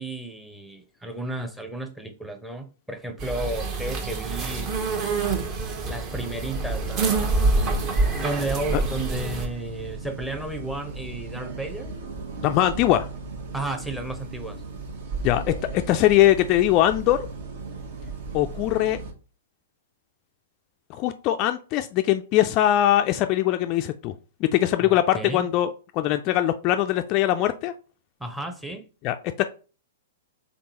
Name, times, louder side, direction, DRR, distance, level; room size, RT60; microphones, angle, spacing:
voice 1, 0.0-4.7 5.9-7.8 8.1-11.9 13.5-14.6 24.8-25.5 28.2-28.9, right 2 dB, 5° right, 0.7 m, -33 dB
sound 1, 3.2-9.5, right 3 dB, 35° right, 0.9 m, -26 dB
sound 2, 6.1-19.1, right 3 dB, 60° right, 1.1 m, -37 dB
voice 2, 12.4-13.1 15.2-15.4 15.7-17.2 18.3-19.0 20.9-24.1 24.4-25.7 25.9-27.7 29.0-29.4, left 13 dB, 40° left, 0.3 m, -21 dB
3.7 x 3.6 x 2.9 m
figure-of-eight pair, 110°, 0 cm